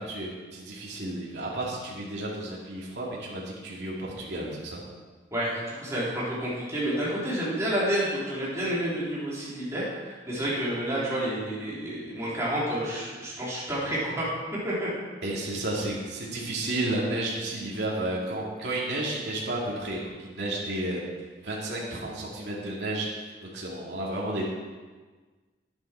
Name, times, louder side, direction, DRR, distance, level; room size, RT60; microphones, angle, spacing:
voice 1, 0.0-4.8 15.2-21.0 21.4-24.5, right 1 dB, 65° right, -5 dB, 2.4 m, -32 dB
voice 2, 5.3-14.3 14.6-14.9, right 1 dB, 15° right, -8 dB, 3.8 m, -29 dB
10.5 x 10.0 x 4.5 m, 1.4 s
head